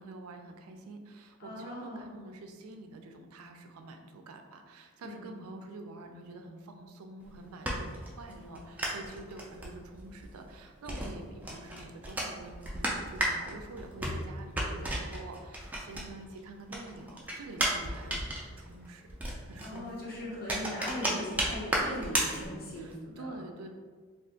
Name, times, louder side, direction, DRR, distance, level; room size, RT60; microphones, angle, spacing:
voice 1, 0.0-19.1 19.5-20.1 22.8-23.7, right 2 dB, 85° right, 5 dB, 0.4 m, -47 dB
voice 2, 1.4-2.1 5.0-5.3 19.6-23.4, left 1 dB, 45° left, -3 dB, 0.7 m, -39 dB
sound 1, 7.2-16.4 16.7-22.9, right 1 dB, 5° right, 0.3 m, -34 dB
2.4 x 2.4 x 3.6 m, 1.5 s
head